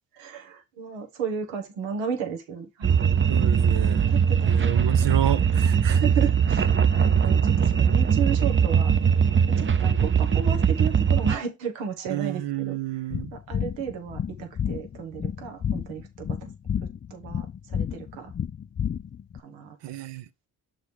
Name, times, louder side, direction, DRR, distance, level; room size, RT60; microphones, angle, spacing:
voice 1, 0.1-3.0 4.1-5.2 5.9-8.9 9.5-12.8 13.3-16.5 17.1-18.3 19.3-19.8, right 7 dB, 85° right, 1.3 m, -34 dB
sound 1, 2.8-11.4, right 7 dB, 25° right, 0.6 m, -21 dB
voice 2, 3.3-4.1 4.4-6.0 12.1-13.3 19.8-20.3, right 12 dB, 70° right, 0.8 m, -30 dB
sound 2, 13.1-19.4, left 8 dB, 25° left, 0.4 m, -31 dB
6.6 x 3.8 x 4.7 m
supercardioid pair, 50°, 43 cm